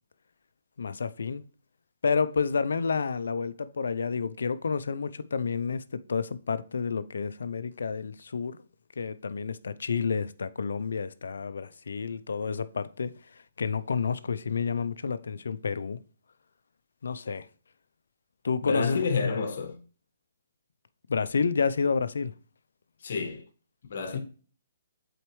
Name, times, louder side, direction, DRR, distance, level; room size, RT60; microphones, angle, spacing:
voice 1, 0.8-1.4 2.0-8.6 9.0-16.0 17.0-17.5 18.4-19.1 21.1-22.3, left 5 dB, 80° left, 0.5 m, -30 dB
voice 2, 18.6-19.8 23.0-23.4 23.9-24.2, left 5 dB, 60° left, 1.3 m, -29 dB
7.9 x 4.3 x 3.1 m
hypercardioid pair, 155°, 0 cm